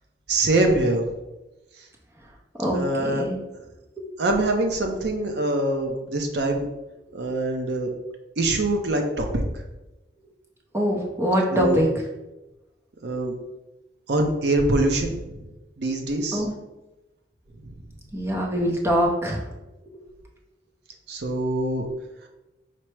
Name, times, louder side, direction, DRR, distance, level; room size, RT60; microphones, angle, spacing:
voice 1, 0.3-1.0 2.7-3.3 4.2-6.7 7.1-7.9 8.4-9.4 11.5-11.8 13.0-13.4 14.1-15.4 15.8-16.4 21.1-21.9, right 2 dB, 60° right, 3 dB, 0.6 m, -24 dB
voice 2, 2.6-3.4 10.7-11.9 16.3-16.5 18.1-19.4, equal, 15° right, -1 dB, 0.5 m, -23 dB
4.4 x 2.0 x 4.6 m, 1.0 s
head